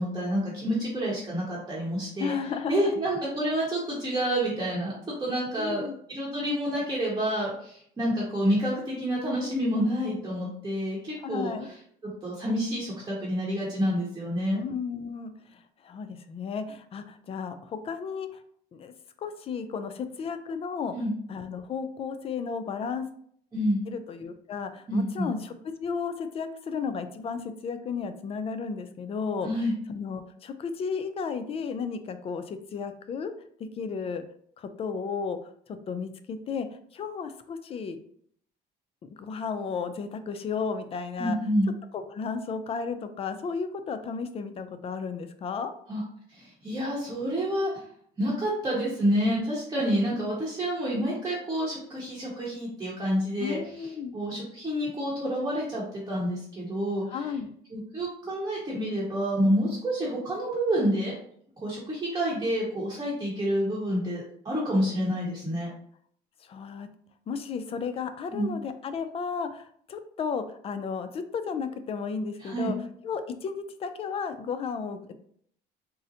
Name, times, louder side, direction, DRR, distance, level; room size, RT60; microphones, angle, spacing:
voice 1, 0.0-2.3 2.7-11.7 12.0-14.6 20.9-21.1 23.5-23.8 24.9-25.3 29.4-29.7 41.2-41.7 45.9-46.0 46.3-47.8 48.2-57.0 57.7-61.1 61.6-65.7 68.3-68.5 72.4-72.7, equal, 20° right, -6 dB, 0.9 m, -28 dB
voice 2, 2.2-2.9 5.6-6.0 11.2-11.7 14.5-18.4 18.7-18.9 19.2-20.9 21.3-23.1 23.9-25.5 25.8-29.5 29.9-33.3 33.6-34.2 34.6-35.4 35.7-36.7 36.9-38.0 39.0-41.4 41.9-45.7 50.1-50.3 53.4-54.1 57.1-57.5 66.4-66.9 67.3-72.8 73.0-75.1, left 5 dB, 35° left, 10 dB, 0.4 m, -33 dB
3.8 x 2.1 x 2.7 m, 0.63 s
cardioid pair, 110°, 17 cm